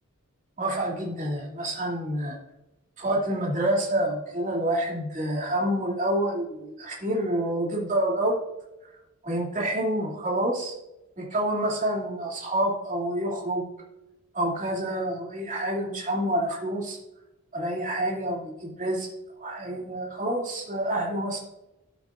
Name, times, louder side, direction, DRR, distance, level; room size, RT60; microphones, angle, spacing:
voice 1, 0.6-2.4 3.0-8.3 9.2-10.8 11.2-13.6 14.3-17.0 17.5-19.1 19.4-21.4, right 1 dB, 35° right, -2 dB, 2.4 m, -28 dB
12.5 x 8.3 x 2.4 m, 0.96 s
head